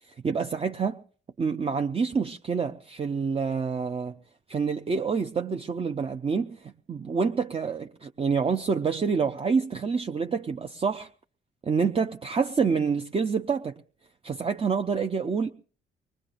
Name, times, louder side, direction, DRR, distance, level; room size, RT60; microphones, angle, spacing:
voice 1, 0.2-1.0 1.4-4.1 4.5-11.1 11.6-13.8 14.2-15.5, right 5 dB, 30° right, 0.6 m, -27 dB
24.0 x 19.5 x 2.5 m
cardioid pair, 90°, 20 cm